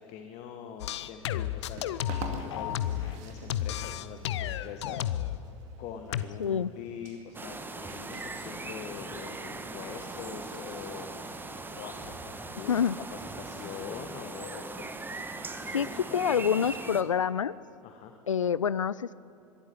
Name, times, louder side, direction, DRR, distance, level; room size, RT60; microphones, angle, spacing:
voice 1, 0.0-5.2 5.8-16.4 17.8-18.2, left 8 dB, 45° left, 6 dB, 1.5 m, -44 dB
sound 1, 0.8-3.2 3.5-5.4 6.1-6.2, left 12 dB, 60° left, 0.7 m, -32 dB
sound 2, 1.0-16.2, right 5 dB, 50° right, 2.3 m, -50 dB
voice 2, 6.4-6.7 12.7-13.0 15.7-17.6 18.3-19.1, left 7 dB, 80° left, 19 dB, 0.4 m, -27 dB
sound 3, 7.3-17.0, right 3 dB, 10° right, 1.4 m, -40 dB
23.0 x 13.0 x 9.6 m, 2.8 s
figure-of-eight pair, 80°, 16 cm